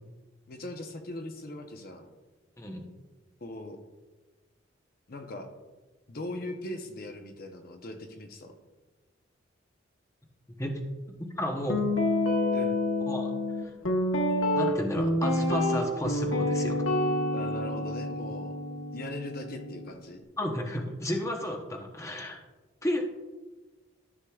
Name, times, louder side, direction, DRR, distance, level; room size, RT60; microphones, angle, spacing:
voice 1, 0.5-2.1 3.4-3.8 5.1-5.5 6.1-8.5 12.5-12.8 17.3-18.5 18.9-20.2, left 1 dB, 50° left, 5 dB, 0.7 m, -40 dB
voice 2, 11.4-11.9 13.1-13.3 14.5-16.8 20.4-22.4 22.8-23.0, left 1 dB, 15° left, 2 dB, 0.8 m, -32 dB
Guitar, 11.7-19.9, left 1 dB, 90° left, 1.1 m, -28 dB
13.0 x 6.3 x 2.3 m, 1.2 s
head